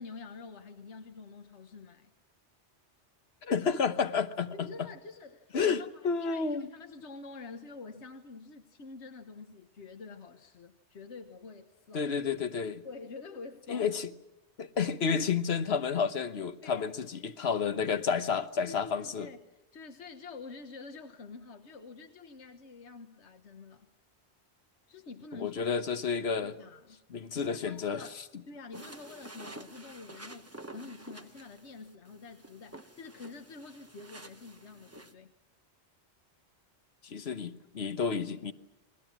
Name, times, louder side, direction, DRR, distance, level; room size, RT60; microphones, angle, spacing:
voice 1, 0.0-2.1 4.5-12.1 12.8-13.9 16.6-17.0 18.6-23.9 24.9-25.7 26.6-27.0 27.3-28.2 28.5-35.3, left 4 dB, 80° left, 1.6 m, -47 dB
voice 2, 3.4-4.7 5.5-6.7 11.9-12.8 13.7-14.1 14.6-19.3 25.3-26.5 27.1-28.1 37.0-38.5, left 6 dB, 65° left, 1.4 m, -30 dB
sound 1, 28.7-35.1, right 2 dB, 15° right, 1.0 m, -49 dB
30.0 x 21.5 x 6.1 m
omnidirectional pair, 1.2 m